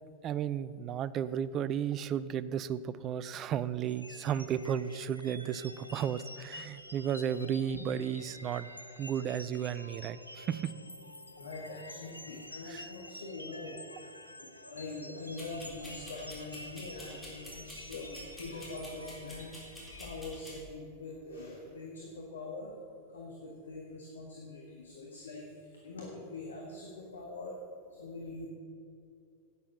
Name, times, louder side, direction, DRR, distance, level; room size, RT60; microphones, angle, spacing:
voice 1, 0.2-8.7 9.0-10.7 12.7-12.9, right 9 dB, 35° right, 17 dB, 0.4 m, -34 dB
sound 1, 3.9-20.2, left 1 dB, 85° left, 0.7 m, -49 dB
voice 2, 11.3-13.8 14.3-19.7 20.0-22.8 23.1-27.6 27.9-28.5, left 2 dB, 70° left, -1 dB, 1.6 m, -43 dB
sound 2, 15.4-20.6, equal, 5° left, 3.8 m, -49 dB
11.0 x 9.1 x 7.0 m, 2.4 s
figure-of-eight pair, 90°, 0 cm